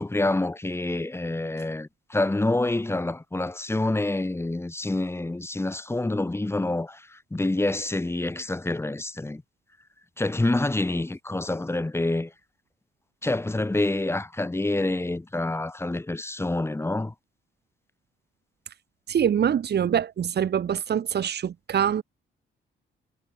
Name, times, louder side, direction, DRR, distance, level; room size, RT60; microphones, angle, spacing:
voice 1, 0.0-9.4 10.2-12.3 13.2-17.1, left 2 dB, 10° left, 2.1 m, -27 dB
voice 2, 19.1-22.0, right 8 dB, 55° right, 3.4 m, -24 dB
cardioid pair, 90°, 20 cm